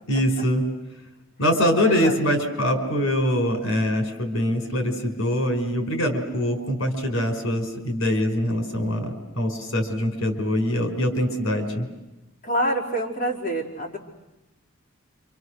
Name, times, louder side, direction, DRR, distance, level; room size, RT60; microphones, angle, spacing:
voice 1, 0.1-0.7 1.4-11.9, equal, 75° left, 4 dB, 5.1 m, -23 dB
voice 2, 1.8-2.2 12.4-14.0, right 1 dB, 40° left, -4 dB, 4.6 m, -26 dB
29.0 x 26.5 x 6.5 m, 1.0 s
head